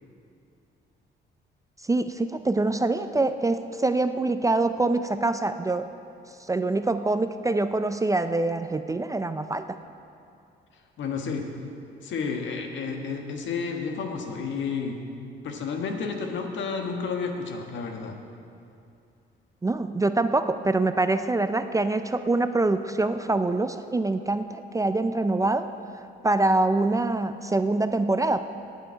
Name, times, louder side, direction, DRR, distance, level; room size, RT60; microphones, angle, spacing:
voice 1, 1.9-5.9 6.5-9.8 19.6-25.7 26.2-28.4, right 2 dB, 15° right, 10 dB, 0.4 m, -25 dB
voice 2, 11.0-11.5 12.0-15.0 15.4-18.2, left 5 dB, 70° left, 3 dB, 1.5 m, -31 dB
9.3 x 8.0 x 8.8 m, 2.5 s
cardioid pair, 90°, 20 cm